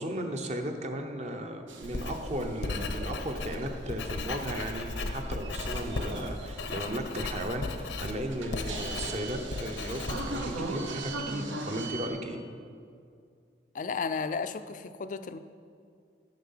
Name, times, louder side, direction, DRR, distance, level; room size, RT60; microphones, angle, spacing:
voice 1, 0.0-7.7 8.0-12.4, right 1 dB, 35° right, 5 dB, 0.7 m, -35 dB
sound 1, 1.7-12.1, right 3 dB, 85° right, 0.9 m, -41 dB
Writing, 1.8-11.2, left 2 dB, 80° left, 0.7 m, -36 dB
sound 2, 3.0-3.7 5.6-6.5 8.6-9.7, equal, 50° right, 2.2 m, -44 dB
voice 2, 13.7-15.4, left 5 dB, 45° left, 11 dB, 0.4 m, -33 dB
9.2 x 6.5 x 5.6 m, 2.3 s
head